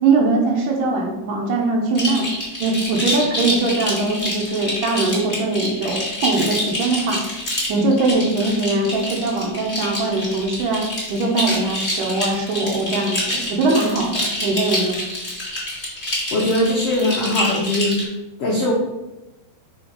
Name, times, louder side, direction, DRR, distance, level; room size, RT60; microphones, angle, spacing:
voice 1, 0.0-2.3 2.6-7.2 7.7-15.0, right 3 dB, 70° right, 0 dB, 2.3 m, -21 dB
sound 1, 1.9-18.0, left 1 dB, 35° left, 0.8 m, -27 dB
voice 2, 16.3-18.0 18.4-18.7, left 1 dB, 80° left, -4 dB, 1.3 m, -20 dB
5.6 x 4.9 x 4.3 m, 1.0 s
omnidirectional pair, 4.3 m